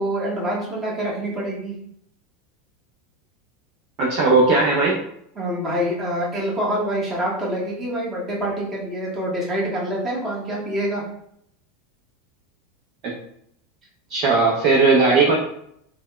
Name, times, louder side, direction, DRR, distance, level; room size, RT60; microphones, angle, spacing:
voice 1, 0.0-1.7 5.3-11.0, equal, 25° right, -4 dB, 1.3 m, -26 dB
voice 2, 4.0-5.0 14.1-15.4, right 3 dB, 50° right, -3 dB, 0.6 m, -17 dB
3.3 x 2.2 x 2.2 m, 0.70 s
hypercardioid pair, 85°, 0 cm